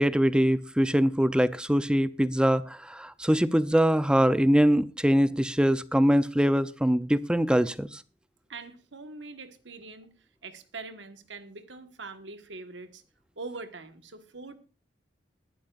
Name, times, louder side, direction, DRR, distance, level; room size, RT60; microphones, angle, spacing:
voice 1, 0.0-8.0, equal, 5° right, 0.5 m, -23 dB
voice 2, 8.5-10.1 10.4-13.0 13.4-14.5, right 3 dB, 85° right, 1.4 m, -43 dB
21.5 x 11.5 x 2.5 m
head